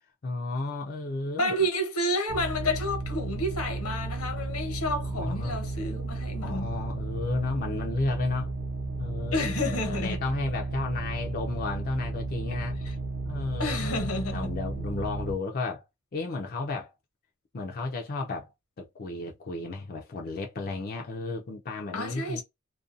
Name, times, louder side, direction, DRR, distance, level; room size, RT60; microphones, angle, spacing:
voice 1, 0.2-1.6 5.0-5.6 6.4-8.5 9.0-12.8 13.2-15.8 16.1-16.9 17.5-18.5 18.8-22.4, left 3 dB, 40° left, 0.5 m, -33 dB
voice 2, 1.3-6.7 9.3-10.2 13.6-14.5 21.9-22.4, left 1 dB, 85° left, 1.1 m, -30 dB
sound 1, 2.3-15.3, right 2 dB, 50° right, 0.7 m, -33 dB
2.5 x 2.2 x 2.5 m
head